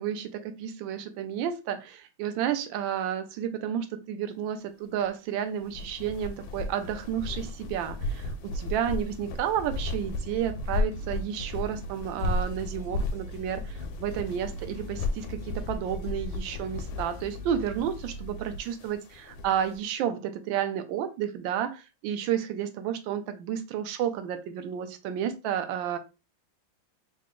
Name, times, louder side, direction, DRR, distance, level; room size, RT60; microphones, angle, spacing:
voice 1, 0.0-26.0, right 9 dB, 80° right, 8 dB, 1.3 m, -31 dB
sound 1, 5.6-19.8, left 2 dB, 85° left, 1.4 m, -35 dB
sound 2, 10.0-18.6, equal, 70° left, 0.8 m, -42 dB
3.9 x 2.2 x 3.6 m, 0.28 s
omnidirectional pair, 2.1 m